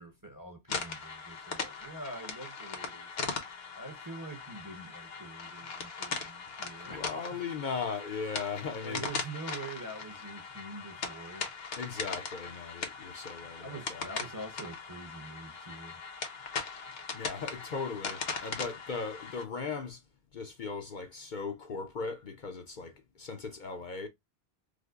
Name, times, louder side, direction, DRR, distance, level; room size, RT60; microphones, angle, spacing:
voice 1, 0.0-3.4 3.7-7.4 8.8-11.5 13.6-16.0, right 2 dB, 20° right, 0.8 m, -45 dB
sound 1, 0.7-19.4, left 5 dB, 70° left, 1.2 m, -40 dB
voice 2, 6.9-9.0 11.8-14.1 17.1-20.0 20.3-24.1, left 5 dB, 55° left, 0.7 m, -38 dB
5.0 x 2.1 x 2.3 m
omnidirectional pair, 1.1 m